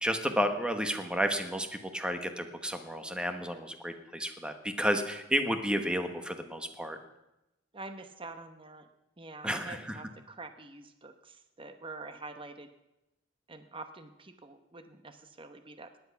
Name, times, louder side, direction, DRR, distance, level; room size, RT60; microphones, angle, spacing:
voice 1, 0.0-1.7 1.9-7.0 9.4-10.0, equal, 5° right, 7 dB, 1.1 m, -31 dB
voice 2, 7.7-8.9 9.2-12.7 13.5-16.0, right 3 dB, 25° right, 8 dB, 0.9 m, -46 dB
18.0 x 10.5 x 5.8 m, 0.92 s
head